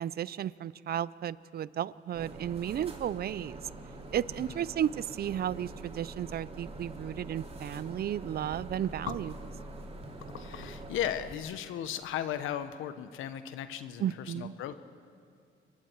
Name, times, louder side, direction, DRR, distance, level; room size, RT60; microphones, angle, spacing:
voice 1, 0.0-3.6 4.1-9.3 14.0-14.5, right 10 dB, 50° right, 20 dB, 0.5 m, -33 dB
sound 1, 2.1-11.4, right 2 dB, 30° right, 2.4 m, -45 dB
voice 2, 10.3-14.7, left 10 dB, 90° left, 11 dB, 1.1 m, -36 dB
28.5 x 22.5 x 4.6 m, 2.3 s
cardioid pair, 90°, 20 cm